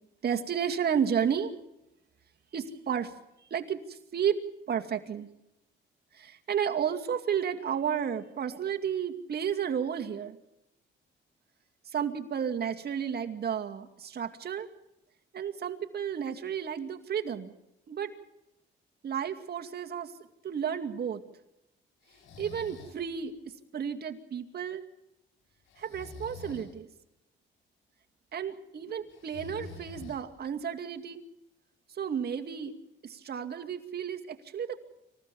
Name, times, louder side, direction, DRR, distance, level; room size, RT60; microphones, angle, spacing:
voice 1, 0.2-1.5 2.5-3.1 3.5-4.4 4.7-5.3 6.1-10.4 11.9-14.7 15.3-17.5 17.9-18.1 19.0-20.1 20.4-21.2 22.4-24.8 25.8-26.9 28.3-31.2 31.9-32.7 33.0-34.8, right 8 dB, 55° right, 5 dB, 2.3 m, -32 dB
Breathing, 22.0-23.0 25.7-26.7 29.1-30.5, left 4 dB, 90° left, 7.1 m, -46 dB
26.5 x 15.5 x 7.1 m, 0.89 s
cardioid pair, 90°, 20 cm